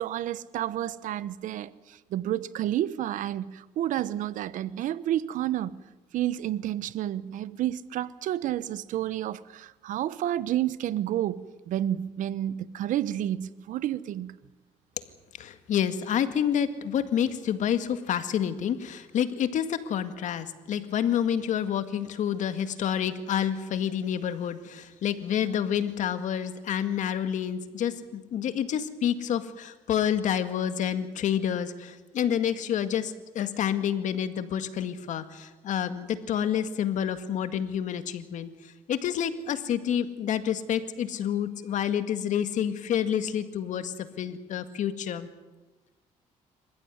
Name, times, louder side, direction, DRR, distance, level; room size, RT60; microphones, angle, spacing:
voice 1, 0.0-5.8 6.1-14.4, right 12 dB, 75° right, 1.0 m, -30 dB
voice 2, 15.4-38.5 38.9-45.3, left 9 dB, 65° left, 1.9 m, -28 dB
26.5 x 15.0 x 9.5 m
cardioid pair, 90°, 13 cm